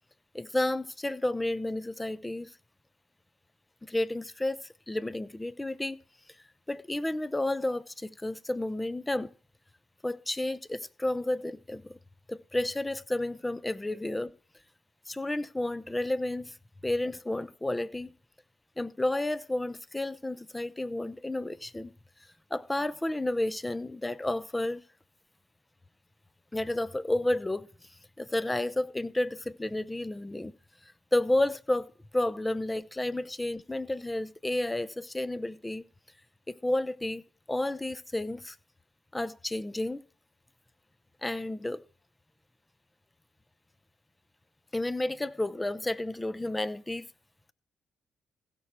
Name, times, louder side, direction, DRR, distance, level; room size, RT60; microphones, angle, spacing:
voice 1, 0.3-2.5 3.8-4.6 4.9-6.0 6.7-9.3 10.0-12.0 12.3-14.3 15.1-16.5 16.8-18.1 18.8-21.9 22.5-24.8 26.5-27.7 28.2-30.5 31.1-35.8 36.5-37.2 37.5-38.6 39.1-40.0 41.2-41.8 44.7-47.1, left 1 dB, 15° left, 0.7 m, -31 dB
16.0 x 6.1 x 4.4 m
supercardioid pair, 65°, 0 cm